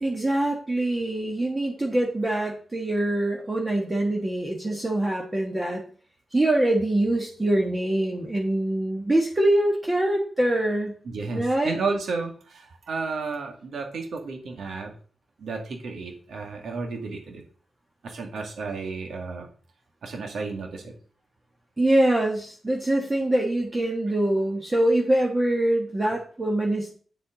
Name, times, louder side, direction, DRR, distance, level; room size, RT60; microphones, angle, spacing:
voice 1, 0.0-5.8 6.3-10.9 11.3-11.8 21.8-26.9, right 1 dB, 15° right, 0 dB, 1.4 m, -24 dB
voice 2, 11.0-14.9 15.4-17.4 18.0-19.5 20.0-20.9, right 4 dB, 70° right, 3 dB, 2.3 m, -32 dB
8.9 x 7.5 x 3.9 m, 0.42 s
wide cardioid pair, 160°, 0 cm